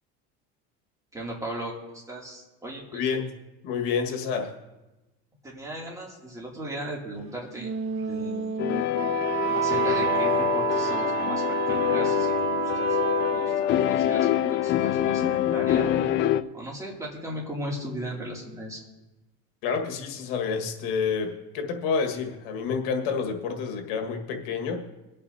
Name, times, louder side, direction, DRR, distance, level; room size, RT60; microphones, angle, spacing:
voice 1, 1.1-1.7 2.1-3.1 5.4-8.6 9.5-16.0 16.5-18.8, right 1 dB, 10° right, -3 dB, 2.6 m, -37 dB
voice 2, 2.9-3.3 3.6-4.5 19.6-24.9, left 5 dB, 80° left, 4 dB, 1.7 m, -29 dB
Wind instrument woodwind instrument, 7.6-13.8, right 9 dB, 50° right, 1.2 m, -29 dB
sound 1, 8.6-16.4, left 11 dB, 40° left, 0.4 m, -25 dB
23.0 x 8.5 x 2.8 m, 1.1 s
cardioid pair, 140°, 30 cm